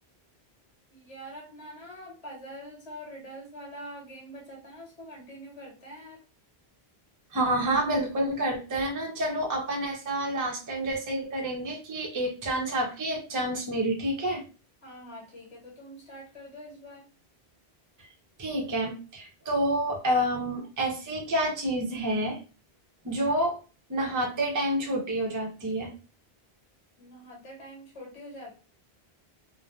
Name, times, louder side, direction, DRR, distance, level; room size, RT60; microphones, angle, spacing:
voice 1, 0.9-6.2 14.8-17.1 27.0-28.5, equal, 30° left, -3 dB, 1.1 m, -44 dB
voice 2, 7.3-14.4 18.4-22.4 23.0-23.6 23.9-25.9, right 1 dB, 25° right, 0 dB, 0.4 m, -28 dB
2.6 x 2.1 x 2.2 m, 0.34 s
omnidirectional pair, 1.1 m